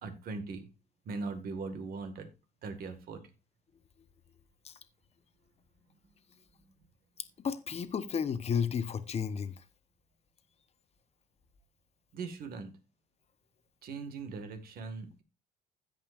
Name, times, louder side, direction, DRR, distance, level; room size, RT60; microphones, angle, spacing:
voice 1, 0.0-0.7 1.1-2.3 2.6-3.2 12.1-12.7 13.8-15.2, right 4 dB, 60° right, 1.9 m, -40 dB
voice 2, 7.4-9.5, left 7 dB, 40° left, 1.0 m, -32 dB
16.5 x 5.5 x 2.5 m
cardioid pair, 110°, 17 cm